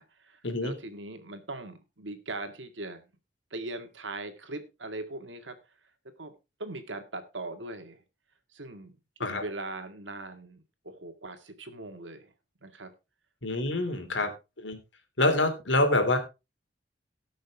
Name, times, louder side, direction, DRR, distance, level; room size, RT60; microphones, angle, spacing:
voice 1, 0.0-3.1 3.5-5.6 6.2-6.3 6.6-8.0 8.5-8.9 9.2-12.3 12.6-12.9 13.7-14.2, right 2 dB, 85° right, 7 dB, 2.0 m, -40 dB
voice 2, 13.4-14.3 14.6-14.8 15.2-16.2, left 2 dB, 80° left, 6 dB, 2.9 m, -26 dB
19.0 x 6.4 x 3.5 m, 0.27 s
head